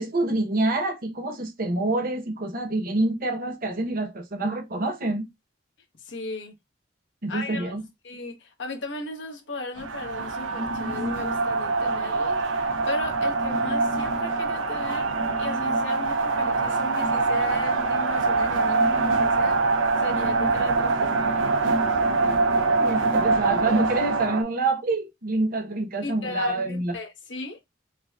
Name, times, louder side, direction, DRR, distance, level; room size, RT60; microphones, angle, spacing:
voice 1, 0.0-5.3 7.2-7.8 22.8-26.9, right 2 dB, 50° right, 0.8 m, -26 dB
voice 2, 6.0-6.5 7.3-7.7 8.0-12.6 12.9-15.1 15.4-19.7 20.0-21.5 26.0-27.6, left 2 dB, 70° left, 0.9 m, -36 dB
sound 1, 9.8-24.4, right 3 dB, 90° right, 0.5 m, -24 dB
4.9 x 2.1 x 2.3 m
head